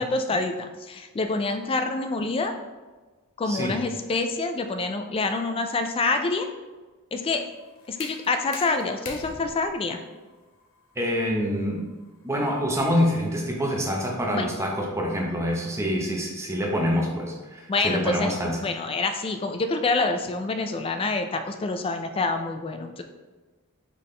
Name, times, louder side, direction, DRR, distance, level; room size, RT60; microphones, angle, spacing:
voice 1, 0.0-2.5 3.4-6.5 7.1-7.5 7.9-10.0 14.3-14.5 17.7-18.3 18.6-23.0, left 3 dB, 25° left, 7 dB, 0.3 m, -27 dB
voice 2, 3.5-3.8 11.0-11.8 12.2-18.6, equal, 15° right, -1 dB, 0.7 m, -26 dB
sound 1, 7.3-13.1, left 4 dB, 65° left, 0.7 m, -45 dB
4.1 x 3.6 x 3.2 m, 1.3 s
head